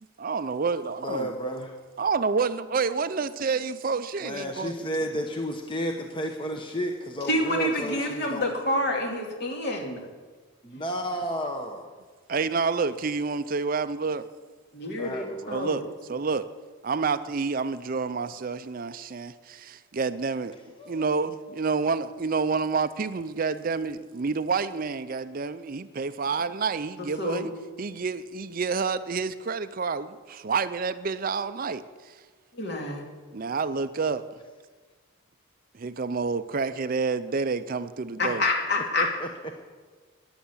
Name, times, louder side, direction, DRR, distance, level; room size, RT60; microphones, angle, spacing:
voice 1, 0.2-1.3 2.0-5.2 12.3-14.3 15.5-15.8 16.1-16.5 16.8-32.1 33.3-34.3 35.7-38.4, right 4 dB, 40° right, 13 dB, 0.5 m, -29 dB
voice 2, 1.0-1.7 4.2-8.5 10.8-11.9 15.0-15.6 20.8-21.1 39.0-39.3, equal, 25° left, 3 dB, 1.0 m, -32 dB
voice 3, 7.3-10.1 14.7-15.8 27.0-27.5 32.5-33.0 38.2-39.1, left 1 dB, 50° left, 1 dB, 2.5 m, -28 dB
14.0 x 10.5 x 7.2 m, 1.4 s
head